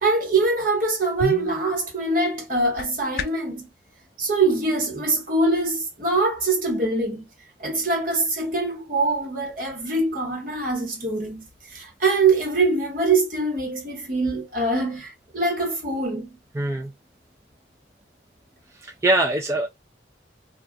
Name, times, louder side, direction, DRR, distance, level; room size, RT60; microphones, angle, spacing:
voice 1, 0.0-3.7 4.2-7.2 7.6-16.3, right 3 dB, 50° right, 1.2 m, -23 dB
sound 1, 1.0-3.6, left 4 dB, 55° left, 0.4 m, -34 dB
voice 2, 16.6-16.9 18.8-19.7, right 2 dB, 15° right, 0.3 m, -22 dB
2.4 x 2.3 x 3.7 m
head